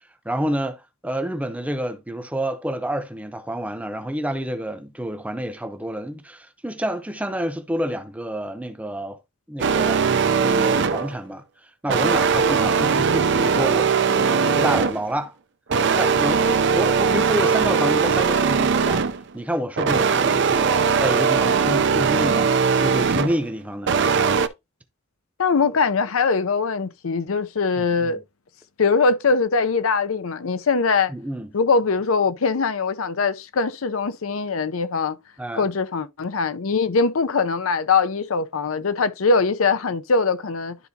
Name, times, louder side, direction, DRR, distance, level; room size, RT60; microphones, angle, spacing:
voice 1, 0.2-9.2 9.5-10.1 10.4-15.3 15.9-19.0 19.3-22.5 22.8-23.9 27.8-28.2 31.1-31.6 35.4-35.7, equal, 5° right, 0.7 m, -28 dB
sound 1, 9.6-11.2 11.9-15.1 15.7-19.2 19.8-23.4 23.8-24.5, right 5 dB, 60° right, 0.5 m, -20 dB
voice 2, 25.4-28.2 28.8-31.1 31.5-35.2 35.5-40.8, left 4 dB, 80° left, 0.6 m, -22 dB
11.5 x 4.0 x 2.7 m
head